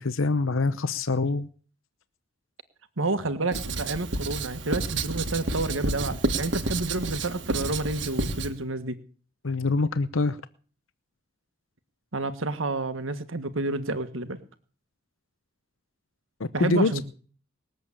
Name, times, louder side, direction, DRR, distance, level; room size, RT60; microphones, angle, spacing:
voice 1, 0.0-1.5 9.4-10.4 16.4-16.9, left 3 dB, 85° left, 0.8 m, -25 dB
voice 2, 3.0-9.0 12.1-14.4 16.5-17.0, right 2 dB, 85° right, 1.5 m, -29 dB
Writing, 3.5-8.5, right 2 dB, 65° right, 1.5 m, -30 dB
20.5 x 8.0 x 8.6 m
head